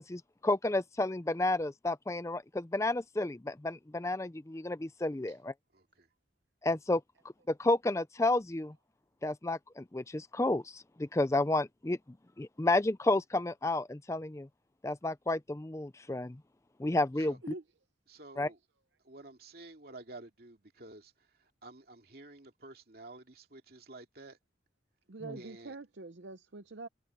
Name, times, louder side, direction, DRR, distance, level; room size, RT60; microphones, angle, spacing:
voice 1, 0.1-5.5 6.6-7.0 7.5-8.7 9.2-12.0 12.4-14.5 14.8-16.4 16.8-17.3 18.4-18.5 25.2-25.4, left 2 dB, 15° left, 0.4 m, -31 dB
voice 2, 5.7-6.1 17.3-17.4 18.1-18.6 19.0-24.4 25.4-25.8, right 2 dB, 55° right, 2.6 m, -51 dB
voice 3, 17.2-17.6 25.1-26.9, right 3 dB, 70° right, 0.8 m, -45 dB
head